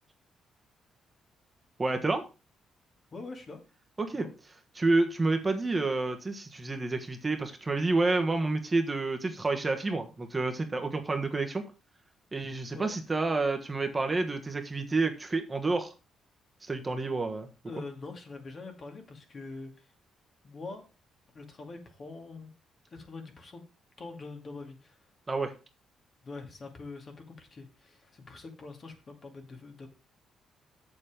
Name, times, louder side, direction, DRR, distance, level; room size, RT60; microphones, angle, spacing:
voice 1, 1.8-2.2 4.0-4.2 4.8-11.6 12.3-15.9 16.6-17.5 25.3-25.5, right 3 dB, 25° right, 5 dB, 1.4 m, -29 dB
voice 2, 3.1-3.6 4.1-4.3 12.7-12.9 17.7-19.9 20.4-20.8 21.3-22.5 22.9-23.6 24.0-25.0 26.2-29.9, left 3 dB, 40° left, 4 dB, 2.4 m, -44 dB
7.4 x 7.0 x 5.0 m, 0.31 s
cardioid pair, 90°, 0 cm